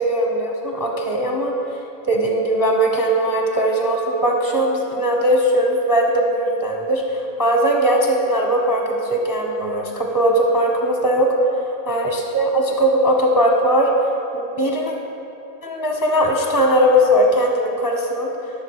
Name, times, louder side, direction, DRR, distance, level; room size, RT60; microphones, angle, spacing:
voice 1, 0.0-1.5 2.1-13.9 14.3-14.9 15.6-18.3, right 1 dB, 20° left, 0 dB, 0.6 m, -19 dB
13.0 x 5.8 x 4.7 m, 2.8 s
omnidirectional pair, 1.7 m